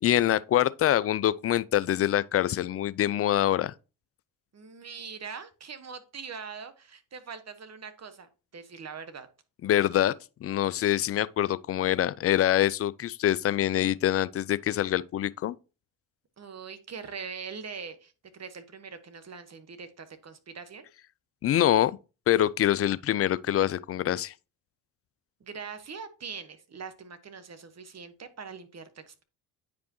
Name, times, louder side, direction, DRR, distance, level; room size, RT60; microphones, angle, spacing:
voice 1, 0.0-3.7 9.6-10.1 10.4-15.6 21.4-21.9 22.3-24.3, left 12 dB, 35° left, 0.4 m, -25 dB
voice 2, 4.5-9.3 16.4-20.9 25.4-29.2, right 5 dB, 35° right, 1.3 m, -42 dB
9.2 x 5.1 x 3.0 m
hypercardioid pair, 55°, 46 cm